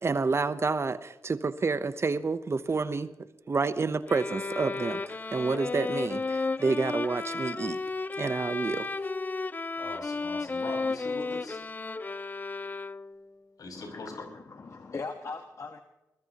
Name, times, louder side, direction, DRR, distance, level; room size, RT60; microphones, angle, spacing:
voice 1, 0.0-3.1 3.5-7.8 8.2-8.9, right 4 dB, 45° right, 13 dB, 0.9 m, -29 dB
sound 1, 4.1-13.3, left 3 dB, 30° left, 0.5 m, -33 dB
voice 2, 9.8-11.6 13.6-14.3, left 3 dB, 75° left, 1 dB, 5.6 m, -41 dB
voice 3, 13.7-15.8, left 4 dB, 50° left, 6 dB, 1.3 m, -40 dB
22.0 x 21.0 x 3.0 m, 1.0 s
cardioid pair, 60°, 7 cm